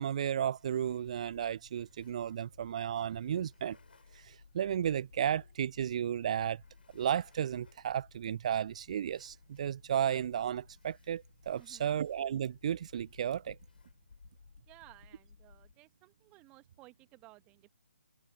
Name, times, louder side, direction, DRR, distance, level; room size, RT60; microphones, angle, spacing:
voice 1, 0.0-3.8 4.1-6.6 6.9-13.6, right 9 dB, 35° right, 0.5 m, -33 dB
sound 1, 0.6-15.7, left 5 dB, 55° left, 5.7 m, -60 dB
voice 2, 11.5-12.0 14.7-17.7, right 21 dB, 15° right, 2.4 m, -58 dB
figure-of-eight pair, 140°, 6 cm